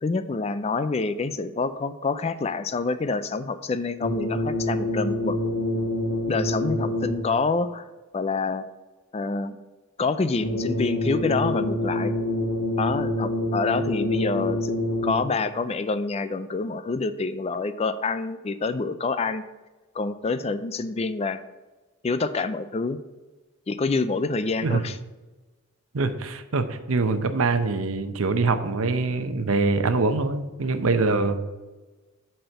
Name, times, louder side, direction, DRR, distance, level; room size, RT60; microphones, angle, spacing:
voice 1, 0.0-5.4 6.3-7.8 8.1-8.6 9.1-9.6 10.0-12.1 12.8-19.4 19.9-21.4 22.0-23.0 23.7-25.0, left 4 dB, 30° left, 13 dB, 0.4 m, -27 dB
sound 1, 4.0-7.4 10.4-15.4, left 1 dB, 50° left, 2.0 m, -26 dB
voice 2, 25.9-31.4, right 3 dB, 80° right, 9 dB, 0.7 m, -24 dB
7.8 x 4.4 x 6.5 m, 1.2 s
head